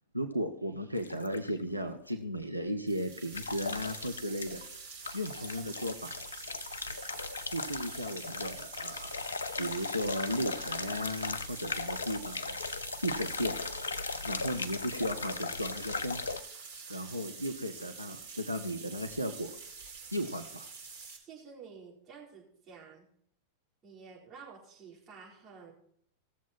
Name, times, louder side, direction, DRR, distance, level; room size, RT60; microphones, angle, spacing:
voice 1, 0.1-4.6 5.1-6.1 7.5-9.2 9.6-12.6 13.0-13.5 14.2-16.2 16.9-19.5 20.1-20.7, equal, 90° right, 6 dB, 0.7 m, -35 dB
sound 1, 1.0-1.6 3.3-4.8 5.0-16.4, left 4 dB, 70° left, 0.5 m, -38 dB
sound 2, 2.9-21.2, right 5 dB, 60° right, 2.7 m, -47 dB
voice 2, 21.2-23.1 23.8-25.7, right 5 dB, 25° right, -4 dB, 4.3 m, -51 dB
16.0 x 7.3 x 4.4 m, 0.67 s
figure-of-eight pair, 90°, 0 cm